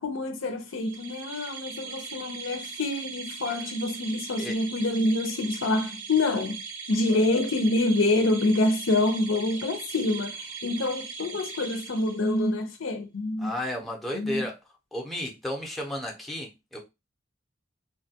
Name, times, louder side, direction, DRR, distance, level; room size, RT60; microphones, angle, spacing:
voice 1, 0.0-6.6 6.9-13.5 14.1-14.5, left 2 dB, 75° left, 0.6 m, -26 dB
sound 1, 0.7-12.6, right 5 dB, 85° right, 0.6 m, -40 dB
voice 2, 13.4-14.6 14.9-16.8, left 1 dB, ahead, 0.6 m, -33 dB
3.2 x 2.2 x 2.7 m
head